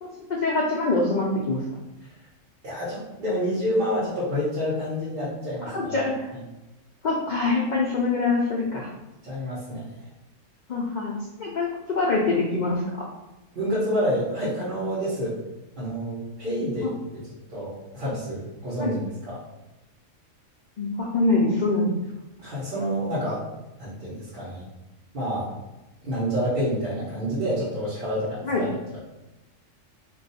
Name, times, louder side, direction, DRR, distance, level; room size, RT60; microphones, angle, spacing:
voice 1, 0.0-1.6 5.7-6.2 7.0-8.9 10.7-11.1 11.4-13.1 16.8-16.9 18.8-18.9 20.8-21.9 28.4-28.7, left 3 dB, 80° left, -2 dB, 0.4 m, -24 dB
voice 2, 2.6-5.9 6.3-6.4 9.2-9.9 13.5-15.4 15.8-19.0 19.3-19.4 22.4-23.4 23.8-24.6 25.1-25.5 26.0-29.0, equal, 45° right, -11 dB, 1.0 m, -28 dB
2.5 x 2.3 x 4.0 m, 1.0 s
omnidirectional pair, 1.3 m